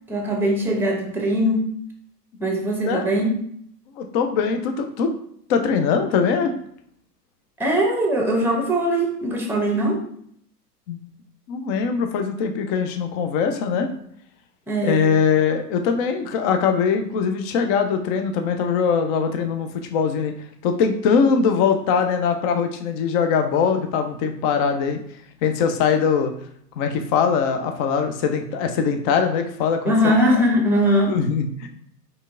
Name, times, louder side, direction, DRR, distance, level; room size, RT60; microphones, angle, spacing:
voice 1, 0.1-1.7 2.4-3.3 7.6-10.0 14.7-15.1 29.8-31.1, equal, 5° right, 2 dB, 0.9 m, -21 dB
voice 2, 4.0-5.1 5.5-6.5 10.9-11.0 11.5-13.9 14.8-20.3 20.6-25.0 25.4-26.3 26.8-29.9 31.1-31.7, left 6 dB, 25° left, 6 dB, 0.4 m, -21 dB
4.4 x 3.2 x 3.7 m, 0.67 s
hypercardioid pair, 115°, 49 cm